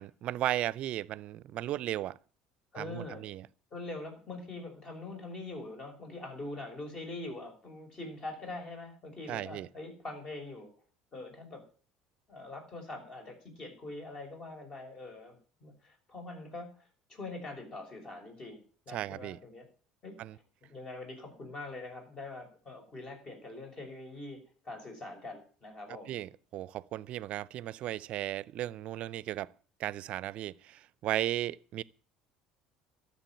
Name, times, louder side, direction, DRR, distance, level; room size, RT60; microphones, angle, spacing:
voice 1, 0.0-2.2 2.8-3.5 9.3-9.7 18.9-19.4 20.2-20.4 26.1-29.5 29.8-31.8, right 13 dB, 55° right, 0.5 m, -35 dB
voice 2, 2.7-3.3 3.7-10.7 11.1-11.6 12.3-16.7 17.1-19.6 20.0-20.2 20.7-24.4 24.6-26.2, left 2 dB, 40° left, 6.2 m, -43 dB
13.0 x 7.4 x 9.0 m
hypercardioid pair, 70°, 2 cm